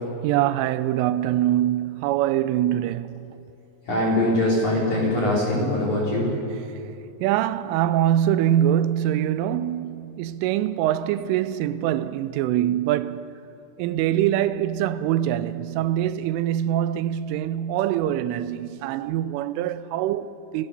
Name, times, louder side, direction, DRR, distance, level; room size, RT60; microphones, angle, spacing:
voice 1, 0.2-3.4 7.2-13.3 13.8-20.7, right 12 dB, 80° right, 3.1 m, -24 dB
voice 2, 3.9-6.3, left 1 dB, 40° left, 4.1 m, -22 dB
29.0 x 15.0 x 6.7 m
omnidirectional pair, 5.8 m